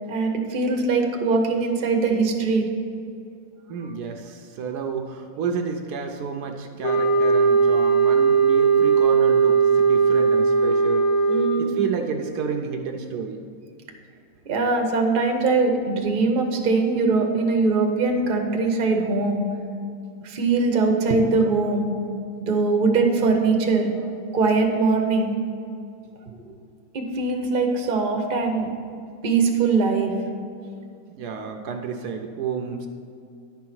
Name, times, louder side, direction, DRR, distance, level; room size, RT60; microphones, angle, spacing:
voice 1, 0.1-2.7 11.3-11.7 14.5-19.4 20.2-21.9 22.4-23.9 24.3-25.3 26.9-28.7 29.2-30.1, right 3 dB, 40° right, 3 dB, 0.8 m, -21 dB
voice 2, 3.7-11.1 11.6-13.5 31.1-32.9, right 6 dB, 70° right, 4 dB, 1.1 m, -30 dB
sound 1, 6.8-11.7, right 5 dB, 60° left, 0.7 m, -18 dB
10.5 x 4.7 x 6.0 m, 2.4 s
omnidirectional pair, 1.8 m